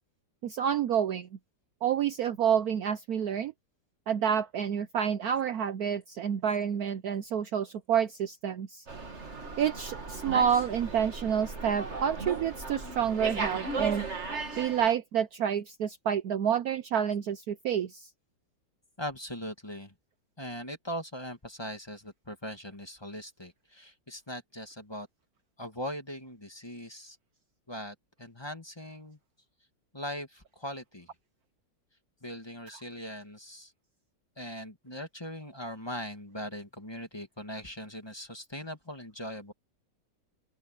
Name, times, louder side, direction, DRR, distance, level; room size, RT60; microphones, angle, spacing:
voice 1, 0.4-1.3 1.8-3.5 4.1-8.8 9.6-14.0 14.6-18.1, right 8 dB, 65° right, 1.1 m, -29 dB
Slam, 8.9-14.9, right 4 dB, 40° right, 2.5 m, -36 dB
voice 2, 19.0-19.9 20.4-25.1 25.6-27.2 27.7-29.2 29.9-31.1 32.2-33.7 34.4-39.5, equal, 15° left, 2.1 m, -40 dB
open air
omnidirectional pair, 2.0 m